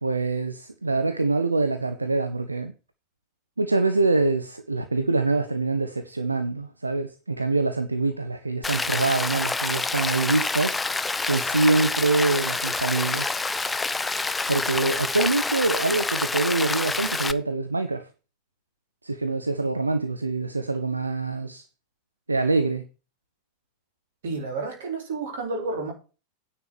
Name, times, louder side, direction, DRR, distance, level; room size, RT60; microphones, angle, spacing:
voice 1, 0.0-2.7 3.6-13.4 14.5-18.1 19.0-21.7 22.3-22.8, right 3 dB, 80° right, 0.8 m, -25 dB
Rain, 8.6-17.3, left 3 dB, 10° left, 0.6 m, -27 dB
voice 2, 24.2-25.9, right 3 dB, 60° right, 4.0 m, -30 dB
9.8 x 5.1 x 7.0 m
figure-of-eight pair, 90°, 0 cm